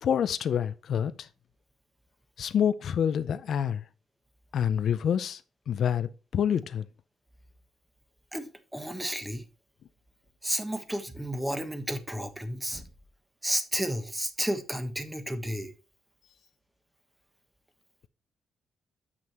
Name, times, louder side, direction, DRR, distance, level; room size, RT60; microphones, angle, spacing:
voice 1, 0.0-1.3 2.4-3.8 4.5-5.4 5.7-6.8, left 8 dB, 65° left, 0.5 m, -27 dB
voice 2, 8.3-9.4 10.4-12.9 13.4-15.7, right 1 dB, 10° right, 1.2 m, -32 dB
7.6 x 6.2 x 4.3 m
cardioid pair, 90°, 0 cm